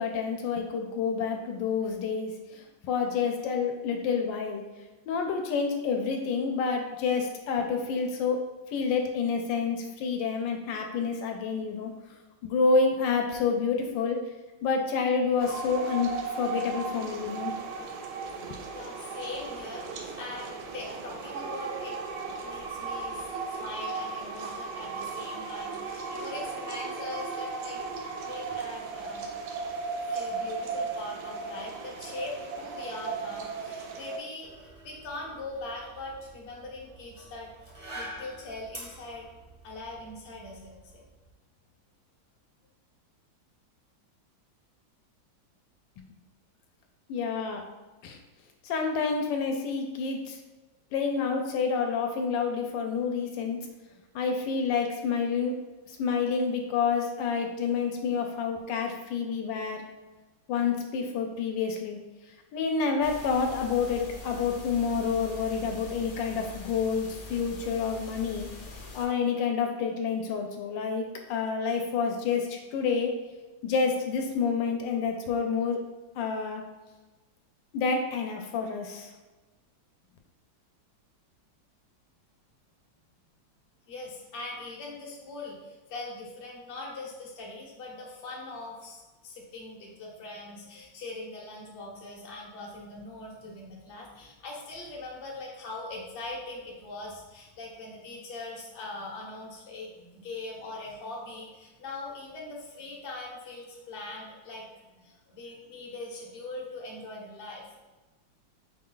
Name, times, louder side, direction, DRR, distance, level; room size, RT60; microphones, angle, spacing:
voice 1, 0.0-4.6 5.1-8.4 8.7-11.9 12.4-14.2 14.6-17.5 18.5-18.6 47.1-47.6 48.0-48.2 48.6-50.4 50.9-53.6 54.1-55.5 55.9-59.8 60.5-62.0 62.5-68.5 68.9-73.1 73.6-75.8 76.2-76.6 77.7-79.1, left 5 dB, 80° left, 3 dB, 1.2 m, -28 dB
sound 1, 15.4-34.2, right 4 dB, 80° right, 1.3 m, -36 dB
voice 2, 18.7-22.0 22.3-27.8 28.2-29.3 30.0-37.5 37.9-39.3 39.6-41.0 83.9-104.7 104.9-107.6, left 2 dB, 45° left, -2 dB, 0.7 m, -41 dB
sound 2, 34.4-41.3, right 1 dB, 25° right, 0.4 m, -47 dB
sound 3, 63.0-69.1, left 2 dB, 60° left, 1.1 m, -44 dB
4.8 x 2.3 x 3.8 m, 1.2 s
omnidirectional pair, 2.0 m